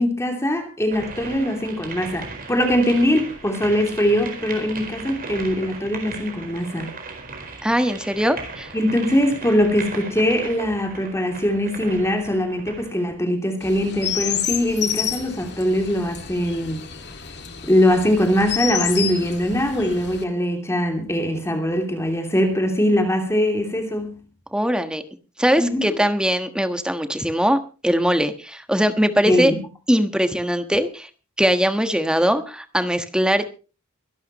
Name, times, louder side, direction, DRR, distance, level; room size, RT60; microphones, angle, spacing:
voice 1, 0.0-6.9 8.7-16.8 17.6-24.2 25.6-25.8 29.2-29.6, equal, 15° left, 2.8 m, -22 dB
sound 1, 0.9-13.0, right 4 dB, 45° right, 4.6 m, -37 dB
voice 2, 7.6-8.7 24.5-25.0 25.4-29.5 29.9-31.1 31.4-33.5, equal, 5° right, 1.3 m, -21 dB
Chirp tweet, 13.6-20.2, left 9 dB, 55° left, 2.2 m, -29 dB
24.0 x 11.5 x 3.0 m
head